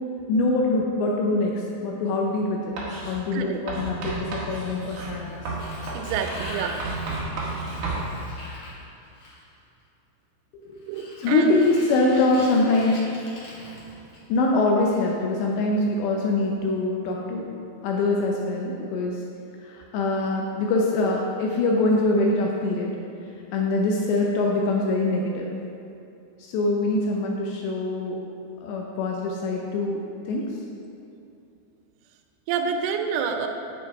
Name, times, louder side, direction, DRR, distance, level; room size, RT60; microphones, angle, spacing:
voice 1, 0.3-2.7 3.1-5.4 10.7-10.8 11.2-13.0 14.3-17.5 17.8-19.2 19.6-23.0 23.5-25.5 26.4-28.2 28.6-30.6, left 2 dB, 80° left, -1 dB, 2.6 m, -24 dB
Writing, 2.8-3.2 3.7-8.1, right 3 dB, 60° right, 2.2 m, -32 dB
Sliding door, 5.0-9.6 10.8-14.5, left 1 dB, 50° left, 3.2 m, -42 dB
voice 2, 5.9-6.8 10.9-11.5 32.5-33.5, right 7 dB, 90° right, 6 dB, 3.4 m, -28 dB
9.0 x 8.5 x 4.7 m, 2.7 s
omnidirectional pair, 5.7 m